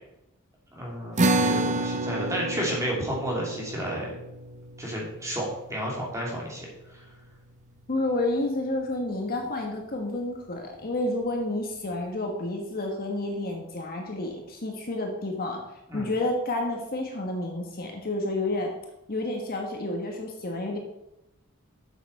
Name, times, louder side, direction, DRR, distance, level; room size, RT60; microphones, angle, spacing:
voice 1, 0.7-4.1 4.8-7.0 15.9-16.1, equal, 15° right, -3 dB, 2.7 m, -32 dB
sound 1, 1.2-7.8, right 2 dB, 35° right, 0.7 m, -30 dB
voice 2, 7.9-18.7 19.1-20.8, left 2 dB, 45° left, 2 dB, 1.3 m, -30 dB
7.9 x 6.8 x 5.3 m, 0.89 s
head